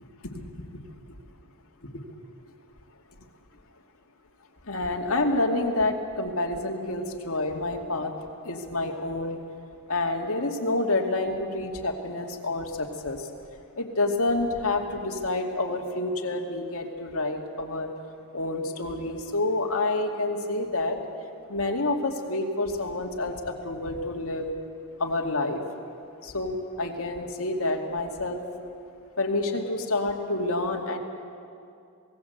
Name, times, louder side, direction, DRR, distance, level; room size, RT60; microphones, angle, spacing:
voice 1, 4.7-8.1 8.4-9.4 9.9-13.2 13.8-17.9 18.3-21.0 21.5-24.5 25.0-25.6 26.2-28.4 29.2-31.0, left 2 dB, 75° left, 2 dB, 2.4 m, -28 dB
27.0 x 18.5 x 8.0 m, 2.5 s
head